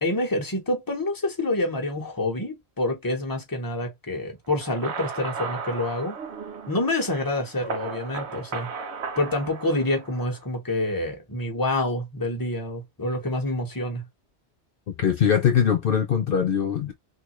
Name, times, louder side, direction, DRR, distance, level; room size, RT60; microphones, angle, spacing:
voice 1, 0.0-6.2 6.7-8.7 9.2-14.0, left 1 dB, 20° left, 1.0 m, -27 dB
sound 1, 4.6-10.4, right 5 dB, 90° right, 1.0 m, -35 dB
voice 2, 15.0-16.9, left 8 dB, 60° left, 0.8 m, -21 dB
3.3 x 2.8 x 3.0 m
omnidirectional pair, 1.1 m